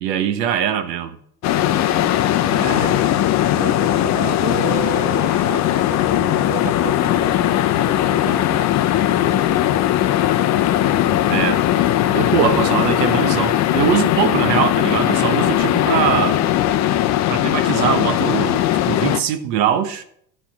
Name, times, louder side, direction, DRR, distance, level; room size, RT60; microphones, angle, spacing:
voice 1, 0.0-1.2 2.5-3.1 11.3-11.6 12.1-16.4 17.3-20.0, right 9 dB, 80° right, 1.2 m, -22 dB
sound 1, 1.4-19.2, left 12 dB, 35° left, 0.6 m, -18 dB
voice 2, 2.5-3.2 3.5-7.4 8.1-8.6 9.1-9.6, right 11 dB, 30° right, 0.4 m, -33 dB
12.5 x 4.2 x 6.0 m
supercardioid pair, 110°, 48 cm